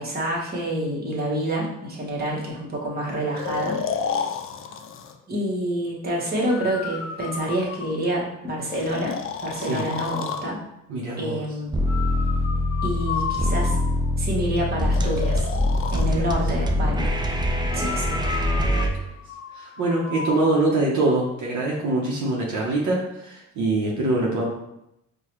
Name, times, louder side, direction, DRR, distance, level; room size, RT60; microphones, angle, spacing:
voice 1, 0.0-3.8 5.3-9.1 9.4-10.6 11.2-11.8 12.8-13.8 14.2-15.5 15.9-17.1 17.7-18.2, right 1 dB, 30° right, -4 dB, 1.2 m, -27 dB
Breathing, 3.4-5.1 6.5-8.1 8.7-10.5 11.9-14.1 14.9-16.1 17.7-20.6, left 6 dB, 45° left, 0.4 m, -32 dB
voice 2, 10.9-11.4 16.0-16.2 17.7-18.0 18.7-18.9 19.5-24.5, right 2 dB, 70° right, -3 dB, 0.9 m, -24 dB
sound 1, 11.7-18.9, left 1 dB, 15° right, 0.4 m, -23 dB
4.6 x 2.3 x 3.0 m, 0.83 s
cardioid pair, 90°, 30 cm